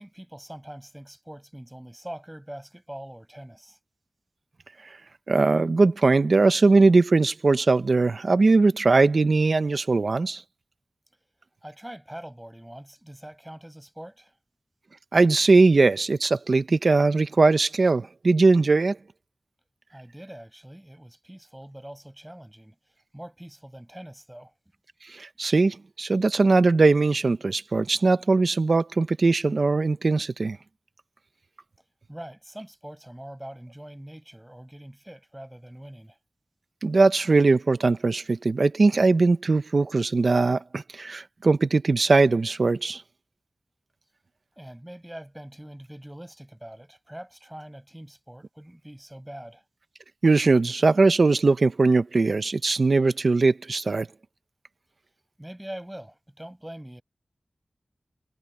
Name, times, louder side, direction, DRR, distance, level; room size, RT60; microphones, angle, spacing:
voice 1, 0.0-3.8 11.6-14.4 19.9-24.5 31.8-36.2 44.6-49.6 55.4-57.0, right 1 dB, 10° right, 6.6 m, -43 dB
voice 2, 5.3-10.4 15.1-19.0 25.1-30.6 36.8-43.0 50.2-54.1, right 3 dB, 60° right, 1.0 m, -20 dB
wide cardioid pair, 95°, 0 cm